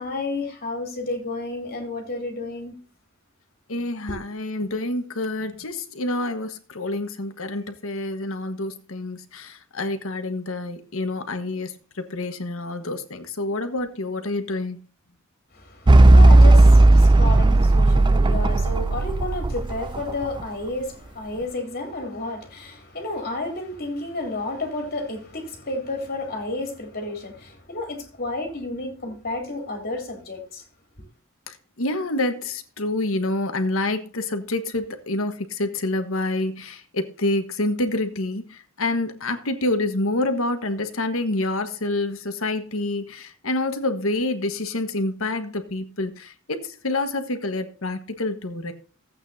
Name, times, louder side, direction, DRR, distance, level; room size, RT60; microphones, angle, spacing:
voice 1, 0.0-2.8 4.1-4.2 15.5-30.6, left 2 dB, 50° left, 3.4 m, -31 dB
voice 2, 3.7-14.8 31.5-48.7, left 2 dB, 85° left, 1.4 m, -27 dB
sound 1, 15.9-20.4, right 2 dB, 20° right, 0.4 m, -14 dB
15.5 x 8.5 x 2.7 m
head